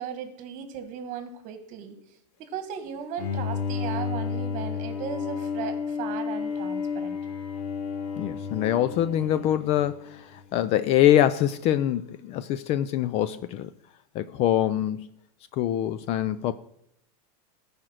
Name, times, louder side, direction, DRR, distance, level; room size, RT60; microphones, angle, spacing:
voice 1, 0.0-2.0 2.4-7.2, right 8 dB, 40° right, 1.6 m, -36 dB
Bowed string instrument, 3.2-10.4, left 6 dB, 75° left, 2.0 m, -32 dB
voice 2, 8.2-13.7 14.1-15.1 15.5-16.5, left 11 dB, 30° left, 0.3 m, -24 dB
14.0 x 5.0 x 6.2 m
supercardioid pair, 145°, 20 cm